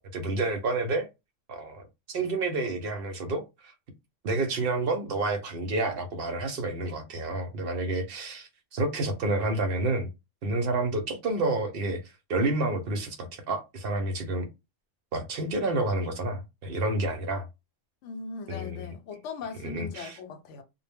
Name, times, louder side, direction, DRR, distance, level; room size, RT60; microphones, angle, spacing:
voice 1, 0.1-1.1 1.5-1.8 2.1-3.7 4.2-10.1 10.4-12.0 12.3-14.5 15.1-17.5 18.5-18.9 19.6-20.2, right 2 dB, 65° right, 0.7 m, -29 dB
voice 2, 18.0-20.6, left 5 dB, 90° left, 0.9 m, -39 dB
2.0 x 2.0 x 3.3 m
omnidirectional pair, 1.2 m